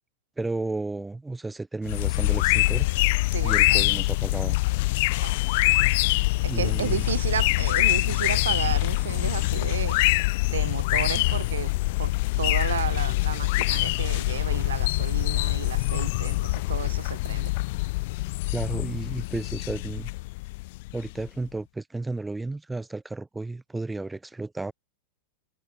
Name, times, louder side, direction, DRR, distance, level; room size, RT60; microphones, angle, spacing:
voice 1, 0.4-2.9 3.4-4.6 6.5-7.0 18.5-20.1 20.9-24.7, right 2 dB, 10° right, 3.5 m, -33 dB
sound 1, 1.9-21.3, left 22 dB, 50° left, 1.0 m, -24 dB
voice 2, 3.3-3.8 5.2-5.4 6.4-10.0 10.5-11.7 12.0-12.1 12.4-17.5, right 8 dB, 65° right, 7.8 m, -32 dB
figure-of-eight pair, 90°, 0 cm